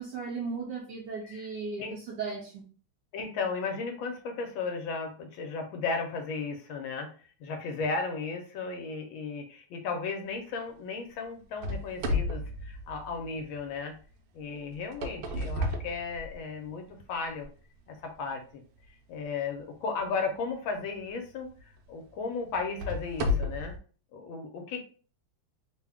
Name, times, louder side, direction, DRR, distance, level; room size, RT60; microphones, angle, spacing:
voice 1, 0.0-2.6, right 4 dB, 70° right, 1.0 m, -36 dB
voice 2, 3.1-7.1 7.4-13.9 14.3-16.8 17.1-17.5 17.9-18.4 19.1-21.5 21.9-23.7 24.1-24.8, left 4 dB, 70° left, 1.3 m, -35 dB
sound 1, 11.6-13.6 14.7-16.7 17.3-17.4 18.1-18.2 20.8-21.0 21.6-21.7 22.5-23.8, left 2 dB, 90° right, 1.6 m, -32 dB
3.7 x 2.2 x 3.4 m
omnidirectional pair, 2.4 m